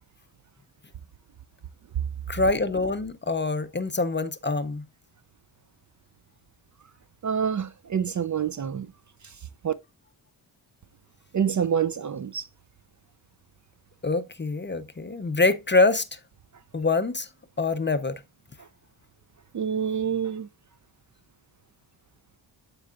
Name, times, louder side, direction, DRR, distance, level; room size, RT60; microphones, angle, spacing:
voice 1, 2.3-4.9 14.0-16.2 16.7-17.3 17.6-18.2, left 3 dB, 25° left, 0.5 m, -25 dB
voice 2, 7.2-8.9 9.6-9.7 11.3-12.5 19.5-20.5, right 7 dB, 40° right, 0.4 m, -27 dB
12.5 x 4.6 x 2.4 m
wide cardioid pair, 160°, 46 cm